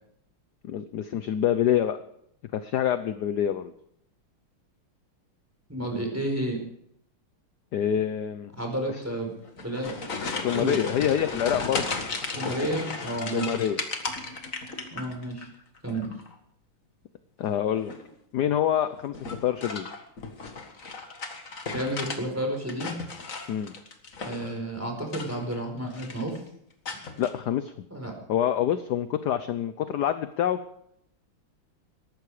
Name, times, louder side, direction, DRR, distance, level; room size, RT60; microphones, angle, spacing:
voice 1, 0.6-2.0 2.5-3.7 7.7-8.5 10.3-11.9 12.4-12.5 13.3-13.8 17.4-17.9 18.3-19.1 19.4-19.9 23.5-23.7 27.2-27.7 28.3-30.6, left 10 dB, 65° left, 11 dB, 1.2 m, -26 dB
voice 2, 5.7-6.6 8.6-9.3 9.6-9.9 10.3-10.8 12.3-13.6 14.9-15.5 15.8-16.1 21.7-23.0 24.2-26.4 27.9-28.1, right 1 dB, 5° right, 2 dB, 4.7 m, -31 dB
sound 1, 9.4-15.5 15.8-16.3 17.7-18.1 19.1-22.2 22.5-24.6 25.0-25.6 25.9-26.4 26.9-27.3, left 4 dB, 40° left, 2.0 m, -35 dB
19.0 x 14.5 x 4.9 m, 0.72 s
omnidirectional pair, 2.3 m